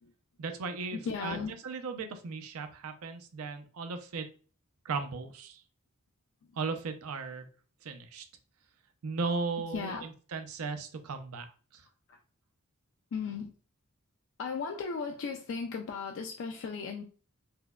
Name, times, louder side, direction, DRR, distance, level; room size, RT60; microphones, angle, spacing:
voice 1, 0.4-4.3 4.8-5.6 6.6-7.5 7.8-8.2 9.0-11.5 11.7-11.8, right 4 dB, 75° right, 7 dB, 0.5 m, -36 dB
voice 2, 0.9-1.5 9.7-10.1 12.1-12.2 13.1-13.5 14.4-17.0, left 5 dB, 55° left, 3 dB, 0.3 m, -36 dB
4.3 x 2.1 x 2.2 m, 0.38 s
head